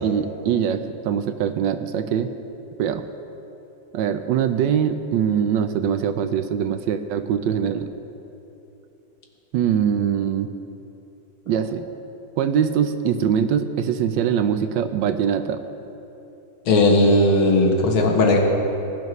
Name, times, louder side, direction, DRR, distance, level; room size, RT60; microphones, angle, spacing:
voice 1, 0.0-2.3 2.8-3.0 3.9-7.9 9.5-10.5 11.5-11.8 12.4-15.6, right 8 dB, 75° right, 9 dB, 1.2 m, -22 dB
voice 2, 16.7-18.4, left 2 dB, 90° left, 1 dB, 2.0 m, -17 dB
20.5 x 10.5 x 3.1 m, 3.0 s
omnidirectional pair, 2.2 m